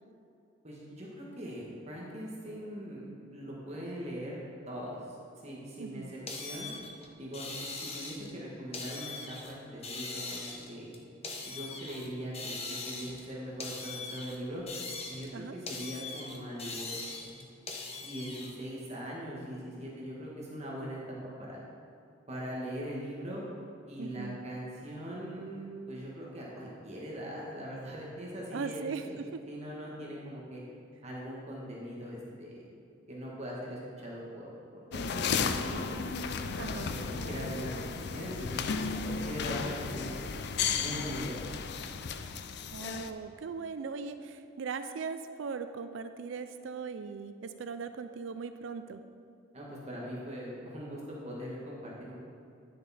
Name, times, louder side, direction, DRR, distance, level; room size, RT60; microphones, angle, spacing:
voice 1, 0.6-5.0 5.4-6.7 7.2-10.9 11.4-14.6 15.1-17.0 18.0-21.6 22.3-23.4 23.8-30.6 31.0-32.6 33.1-34.5 34.9-35.9 36.4-37.8 38.1-40.2 40.7-41.5 49.5-52.1, equal, 35° right, -4 dB, 1.5 m, -41 dB
voice 2, 5.8-6.1 15.3-15.6 24.0-24.4 28.5-29.2 36.6-36.9 42.7-49.0, right 5 dB, 80° right, 10 dB, 0.4 m, -39 dB
sound 1, 6.3-8.3 8.7-9.5 9.8-12.1 12.3-13.3 13.6-15.3 15.7-18.5, left 3 dB, 35° left, 1.0 m, -41 dB
sound 2, 34.9-43.1, left 5 dB, 60° left, 0.4 m, -34 dB
10.5 x 6.6 x 4.2 m, 2.6 s
head